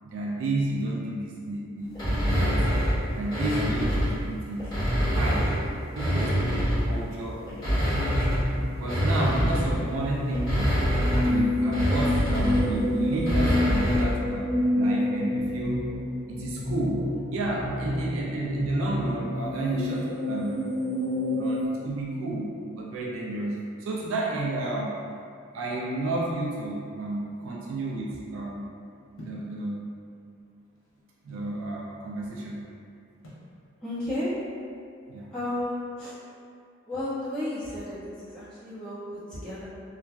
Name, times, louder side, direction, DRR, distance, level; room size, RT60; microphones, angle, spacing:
voice 1, 0.0-2.7 3.1-4.6 5.1-5.5 5.9-8.1 8.8-10.8 11.2-15.9 16.3-20.6 21.3-25.0 25.5-28.7 29.2-29.8 31.2-32.6 35.1-35.3, right 2 dB, 70° right, -3 dB, 0.4 m, -31 dB
sound 1, 2.0-4.2 4.6-7.0 7.5-14.2, equal, 20° left, 1.5 m, -26 dB
sound 2, 7.5-21.7, left 1 dB, 50° left, 1.0 m, -29 dB
sound 3, 29.2-29.5 30.4-31.6 33.2-33.5, equal, 85° left, 0.8 m, -46 dB
voice 2, 33.8-34.3 35.3-36.1 36.9-39.6, left 1 dB, 5° left, -16 dB, 1.3 m, -33 dB
3.0 x 2.4 x 2.3 m, 2.4 s
head